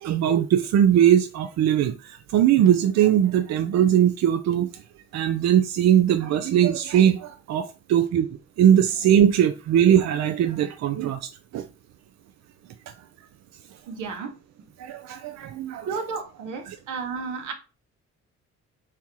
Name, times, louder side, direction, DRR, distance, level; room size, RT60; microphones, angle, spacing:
voice 1, 0.0-4.7 5.1-8.3 8.6-11.6 14.8-15.9, right 10 dB, 60° right, 0.5 m, -20 dB
voice 2, 13.9-14.3 15.8-17.5, right 5 dB, 85° right, 1.1 m, -32 dB
4.4 x 3.0 x 3.6 m
cardioid pair, 90°, 30 cm